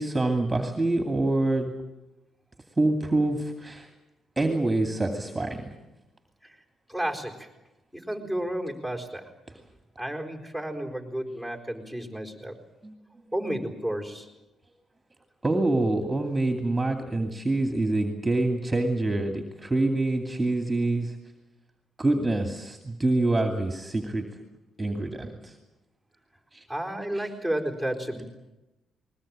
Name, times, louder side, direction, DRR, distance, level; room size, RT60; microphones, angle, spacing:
voice 1, 0.0-1.7 2.8-3.9 4.4-5.6 12.8-12.9 15.4-21.1 22.0-24.3 24.8-25.6 26.5-26.6 27.1-27.2, right 2 dB, 15° right, 4 dB, 2.6 m, -26 dB
voice 2, 6.9-7.5 7.9-9.3 10.0-12.6 13.3-14.3 26.7-28.2, right 1 dB, 10° left, 3 dB, 4.4 m, -32 dB
20.5 x 20.5 x 8.9 m, 1.0 s
cardioid pair, 90°, 0 cm